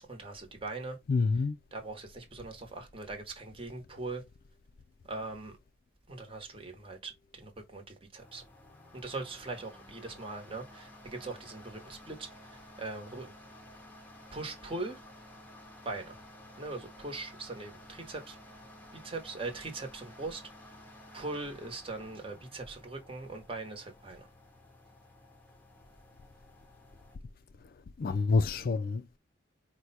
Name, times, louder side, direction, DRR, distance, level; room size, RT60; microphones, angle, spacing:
voice 1, 0.1-1.0 1.7-4.2 5.1-5.6 6.1-8.4 8.9-13.3 14.3-15.0 15.8-16.2 16.6-18.4 19.0-20.4 21.1-24.3, right 3 dB, 30° right, 1.0 m, -41 dB
voice 2, 1.1-1.6 27.6-29.2, left 4 dB, 50° left, 0.4 m, -28 dB
sound 1, 8.2-27.2, left 1 dB, 10° left, 0.7 m, -53 dB
4.7 x 2.2 x 4.0 m
head